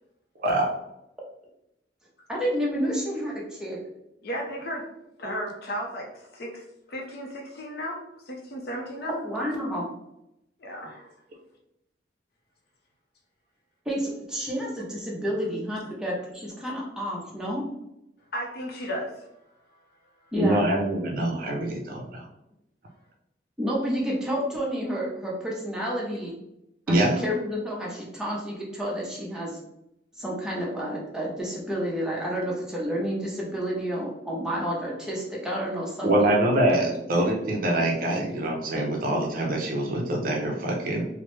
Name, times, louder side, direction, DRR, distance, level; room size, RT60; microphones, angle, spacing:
voice 1, 2.3-3.8 9.2-9.9 13.9-17.6 20.3-20.7 23.6-26.3 26.9-29.6 30.2-36.3, equal, 5° right, -4 dB, 0.7 m, -30 dB
voice 2, 4.2-4.8 5.2-8.0 8.3-9.2 10.6-11.1 18.3-19.3, equal, 60° left, 1 dB, 0.6 m, -34 dB
voice 3, 20.4-22.3 26.9-27.2 36.0-41.0, right 1 dB, 50° right, 0 dB, 0.5 m, -24 dB
3.1 x 2.0 x 3.1 m, 0.84 s
head